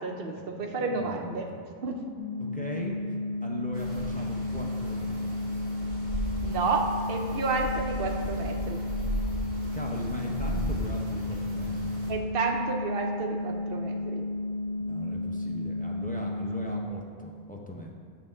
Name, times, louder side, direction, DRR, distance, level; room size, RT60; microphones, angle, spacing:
voice 1, 0.0-1.5 1.8-2.0 6.4-8.8 12.1-14.2, right 4 dB, 65° right, 3 dB, 0.9 m, -31 dB
voice 2, 0.8-1.6 2.4-5.6 9.7-12.1 14.8-17.9, left 1 dB, 10° left, -2 dB, 0.5 m, -39 dB
sound 1, 2.2-16.9, left 2 dB, 85° left, 1.0 m, -33 dB
sound 2, 3.7-12.1, equal, 50° right, 1.3 m, -36 dB
7.5 x 3.5 x 5.3 m, 2.2 s
omnidirectional pair, 1.1 m